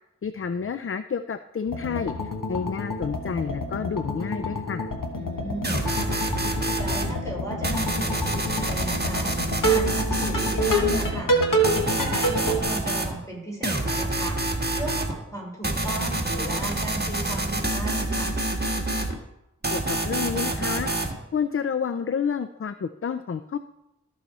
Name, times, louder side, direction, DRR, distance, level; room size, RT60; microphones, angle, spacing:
voice 1, 0.2-4.9 19.7-20.9 21.3-23.6, left 6 dB, 45° left, 11 dB, 0.4 m, -29 dB
sound 1, 1.7-12.6, equal, 75° left, 1.4 m, -28 dB
voice 2, 5.1-6.2 6.5-9.3 9.6-11.3 11.9-14.4 14.7-18.3, right 1 dB, 10° left, -3 dB, 4.1 m, -36 dB
sound 2, 5.6-7.1 7.6-11.1 11.6-13.1 13.6-15.1 15.6-19.1 19.6-21.1, right 2 dB, 30° right, 1.3 m, -27 dB
14.0 x 5.7 x 4.2 m, 0.88 s
wide cardioid pair, 45°, 32 cm